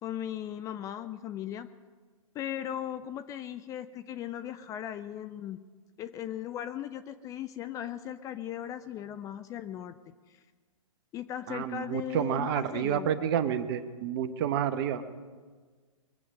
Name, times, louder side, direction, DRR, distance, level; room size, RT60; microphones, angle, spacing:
voice 1, 0.0-1.7 2.3-5.6 6.0-9.9 10.3-10.4 11.1-13.1, left 11 dB, 20° left, 11 dB, 0.4 m, -38 dB
voice 2, 11.5-15.0, right 9 dB, 45° right, 11 dB, 1.0 m, -29 dB
22.5 x 7.9 x 6.2 m, 1.5 s
hypercardioid pair, 125°, 18 cm